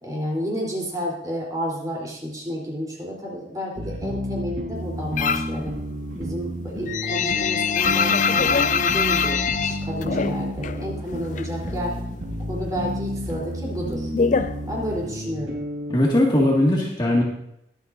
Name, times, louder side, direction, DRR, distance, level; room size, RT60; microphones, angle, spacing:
voice 1, 0.0-5.7 6.1-11.9 12.5-14.1 14.7-15.6, equal, 20° right, -3 dB, 3.6 m, -31 dB
sound 1, 3.8-16.0, equal, 85° right, 2.2 m, -31 dB
sound 2, 5.2-5.6 6.0-10.8 11.1-12.1 12.4-15.2, left 6 dB, 45° left, 0.4 m, -24 dB
voice 2, 15.9-17.2, left 1 dB, 25° left, -3 dB, 2.0 m, -19 dB
22.5 x 8.1 x 2.7 m, 0.78 s
head